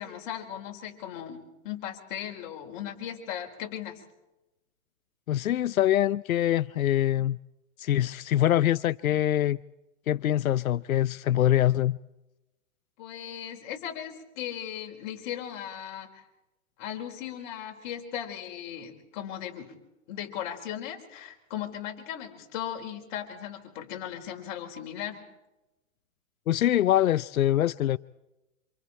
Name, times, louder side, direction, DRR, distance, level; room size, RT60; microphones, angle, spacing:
voice 1, 0.0-4.0 13.0-16.2 16.8-19.7 20.1-25.2, left 10 dB, 35° left, 4.6 m, -37 dB
voice 2, 5.3-7.4 7.8-9.6 10.1-12.0 26.5-28.0, left 12 dB, 90° left, 0.7 m, -24 dB
27.5 x 27.0 x 4.3 m
hypercardioid pair, 155°, 40 cm